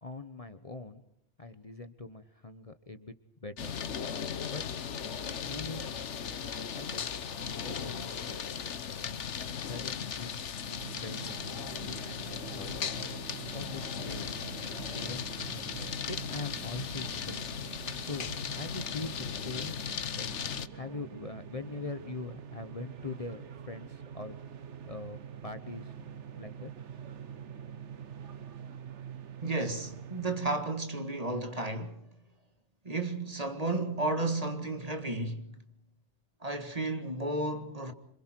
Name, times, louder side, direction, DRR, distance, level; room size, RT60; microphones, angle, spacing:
voice 1, 0.0-1.0 1.4-3.1 3.4-3.8 4.5-4.6 5.2-5.9 6.2-7.1 7.6-8.6 9.3-11.4 11.8-13.0 13.5-14.4 14.9-15.5 16.0-17.4 17.9-19.8 20.2-24.4 24.8-26.7, left 3 dB, 30° left, 1.1 m, -43 dB
sound 1, 3.6-20.7, left 7 dB, 85° left, 1.3 m, -37 dB
sound 2, 10.8-30.7, right 7 dB, 90° right, 1.4 m, -46 dB
voice 2, 29.4-32.0 32.9-35.5 36.4-37.9, right 2 dB, 35° right, 2.0 m, -33 dB
27.5 x 25.5 x 4.6 m
omnidirectional pair, 1.2 m